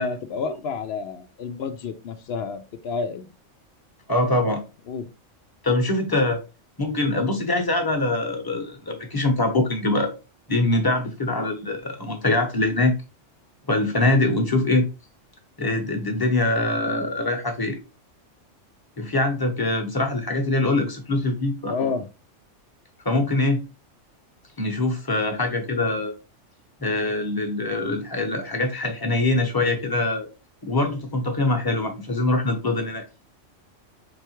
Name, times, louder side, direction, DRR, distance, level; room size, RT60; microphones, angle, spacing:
voice 1, 0.0-3.3 4.9-5.1 21.7-22.1, left 5 dB, 65° left, 0.8 m, -30 dB
voice 2, 4.1-4.6 5.6-6.4 6.8-10.1 10.5-12.9 13.7-14.8 15.6-17.8 19.0-21.9 23.0-23.6 24.6-26.1 26.8-30.3 30.6-33.0, left 2 dB, 20° left, 0.9 m, -23 dB
4.9 x 3.3 x 3.1 m
omnidirectional pair, 1.3 m